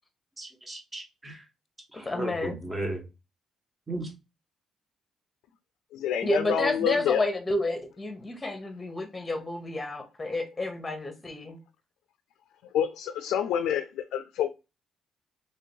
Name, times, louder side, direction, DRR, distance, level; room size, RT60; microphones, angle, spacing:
voice 1, 0.4-1.4 1.9-3.0 3.9-4.1, right 1 dB, 20° right, 1.4 m, -35 dB
voice 2, 1.9-2.6 6.2-11.6, left 2 dB, 20° left, 1.0 m, -30 dB
voice 3, 5.9-7.2 12.7-14.5, left 9 dB, 85° left, 0.4 m, -28 dB
3.2 x 2.8 x 4.3 m
cardioid pair, 90°, 0 cm